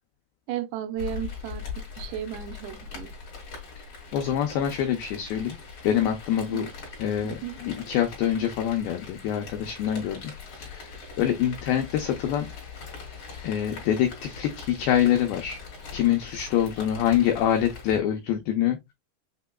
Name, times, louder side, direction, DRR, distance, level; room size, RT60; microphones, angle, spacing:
voice 1, 0.5-1.6 2.0-3.1 6.5-6.7 7.2-7.6, right 10 dB, 80° right, 2.6 m, -34 dB
Rain, 1.0-18.0, left 5 dB, 40° left, 2.2 m, -41 dB
voice 2, 4.1-5.6 5.8-6.7 7.0-7.3 7.6-12.5 13.4-15.6 15.9-18.8, left 10 dB, 85° left, 2.0 m, -25 dB
6.6 x 2.9 x 2.2 m
omnidirectional pair, 4.8 m